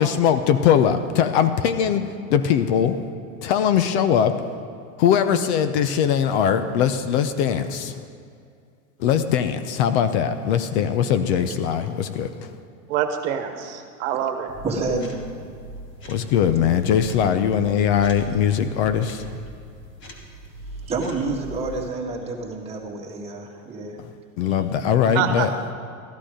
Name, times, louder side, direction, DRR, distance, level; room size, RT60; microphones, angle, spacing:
voice 1, 0.0-3.0 3.4-4.4 5.0-8.0 9.0-12.5 16.1-19.3 24.4-25.5, left 8 dB, 50° left, 10 dB, 0.7 m, -21 dB
voice 2, 12.9-14.5 25.1-25.5, right 9 dB, 55° right, 6 dB, 1.3 m, -25 dB
sound 1, 14.5-21.9, right 1 dB, 30° left, 1.5 m, -40 dB
voice 3, 14.6-15.2 20.9-24.0 24.5-24.6, right 3 dB, 15° right, -3 dB, 1.7 m, -28 dB
13.5 x 11.5 x 5.0 m, 2.4 s
supercardioid pair, 150°, 42 cm